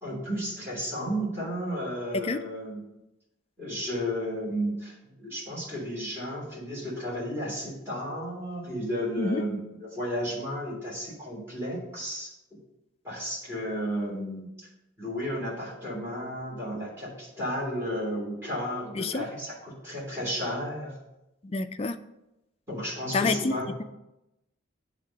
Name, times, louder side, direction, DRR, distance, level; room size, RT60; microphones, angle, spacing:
voice 1, 0.0-2.8 3.6-12.3 13.0-14.7 15.0-21.0 22.7-23.7, equal, 10° right, -6 dB, 3.2 m, -33 dB
voice 2, 21.5-22.0 23.1-23.5, left 3 dB, 30° left, 9 dB, 0.3 m, -27 dB
7.6 x 3.7 x 6.5 m, 0.91 s
head